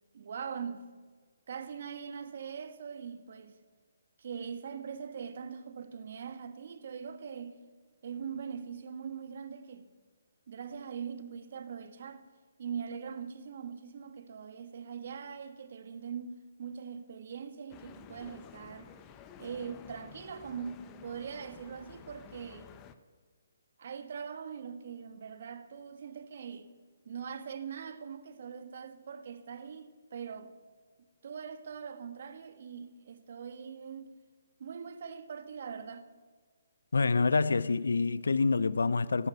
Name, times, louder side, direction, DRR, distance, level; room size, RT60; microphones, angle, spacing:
voice 1, 0.1-0.9 1.5-3.6 4.2-7.6 8.0-9.9 10.5-12.3 12.6-18.9 19.4-22.7 23.8-26.7 27.0-30.5 31.2-34.1 34.6-36.1, right 7 dB, 55° right, 1.3 m, -42 dB
sound 1, 17.7-22.9, left 8 dB, 20° left, 0.8 m, -52 dB
voice 2, 36.9-39.3, left 4 dB, 80° left, 0.6 m, -27 dB
13.5 x 11.0 x 8.0 m
hypercardioid pair, 150°, 0 cm